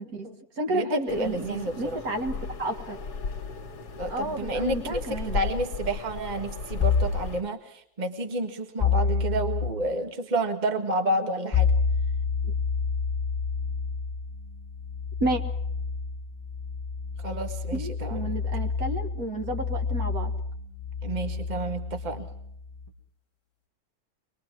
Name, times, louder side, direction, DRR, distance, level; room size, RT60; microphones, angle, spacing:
voice 1, 0.0-3.0 4.1-5.4 15.2-15.4 17.7-20.3, right 1 dB, 55° right, 5 dB, 2.2 m, -31 dB
voice 2, 0.7-2.0 4.0-11.7 12.4-12.5 17.2-18.3 21.0-22.3, right 2 dB, 25° right, 6 dB, 1.6 m, -30 dB
Very Quiet Island, 1.1-7.4, left 5 dB, 70° left, 2.0 m, -36 dB
sound 1, 6.8-7.2 8.8-9.7 11.5-22.9, left 5 dB, 15° left, 1.9 m, -29 dB
25.0 x 21.5 x 6.2 m, 0.69 s
omnidirectional pair, 1.9 m